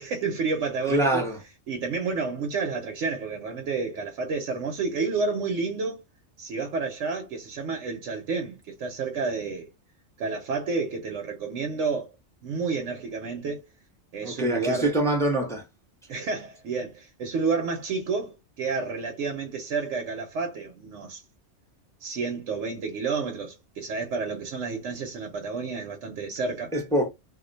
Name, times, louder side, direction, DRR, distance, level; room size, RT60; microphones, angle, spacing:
voice 1, 0.0-1.2 1.7-6.0 6.4-9.7 10.2-12.1 12.4-13.6 14.1-14.9 16.1-21.2 22.0-26.7, right 4 dB, 75° right, 1.0 m, -30 dB
voice 2, 0.9-1.4 14.2-15.6 26.7-27.1, right 1 dB, 5° left, 0.6 m, -24 dB
2.6 x 2.2 x 3.8 m
omnidirectional pair, 1.3 m